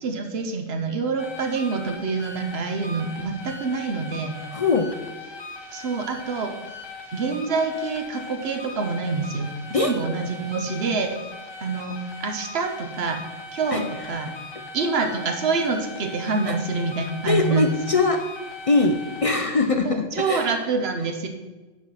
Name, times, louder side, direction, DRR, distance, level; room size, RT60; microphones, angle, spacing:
voice 1, 0.0-4.4 5.7-6.5 7.1-11.2 11.6-13.2 13.5-14.3 14.7-17.8 19.8-21.3, right 4 dB, 70° right, 5 dB, 1.2 m, -26 dB
sound 1, 1.2-19.4, left 2 dB, 25° left, 0.8 m, -39 dB
voice 2, 4.5-5.0 9.7-9.9 13.7-13.8 16.5-16.6 17.2-18.3 18.7-20.5, left 3 dB, 45° left, 6 dB, 0.5 m, -22 dB
9.6 x 4.5 x 5.6 m, 1.2 s
omnidirectional pair, 1.1 m